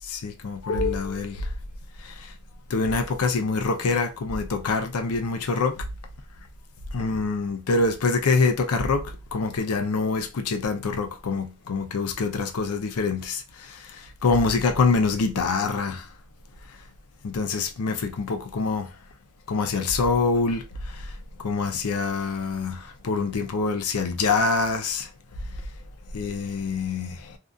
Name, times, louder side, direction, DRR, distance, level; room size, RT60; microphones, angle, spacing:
voice 1, 0.1-1.4 2.7-5.8 6.9-13.4 14.2-16.0 17.2-18.9 19.5-20.6 21.4-25.1 26.1-27.2, left 4 dB, 90° left, 0.5 m, -25 dB
2.7 x 2.3 x 2.3 m
head